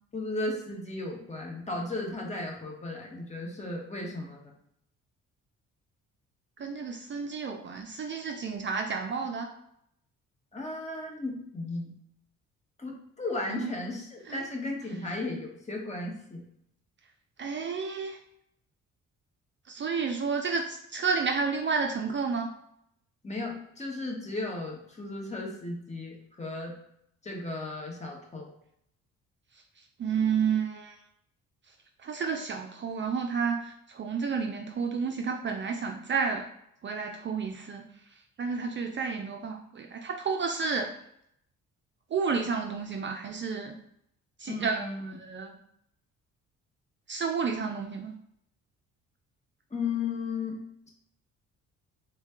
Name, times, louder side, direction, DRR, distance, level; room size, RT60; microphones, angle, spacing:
voice 1, 0.1-4.5 10.5-11.9 12.8-16.4 23.2-26.7 27.2-28.5 44.5-45.2 49.7-50.6, left 2 dB, 20° left, 0 dB, 1.1 m, -35 dB
voice 2, 6.6-9.5 13.5-13.7 14.3-14.4 17.4-18.2 19.7-22.5 30.0-31.0 32.0-36.5 36.8-37.8 38.4-40.9 42.1-43.7 44.4-45.5 47.1-48.1, right 5 dB, 40° right, 3 dB, 0.4 m, -31 dB
4.0 x 2.2 x 3.6 m, 0.75 s
cardioid pair, 90°, 30 cm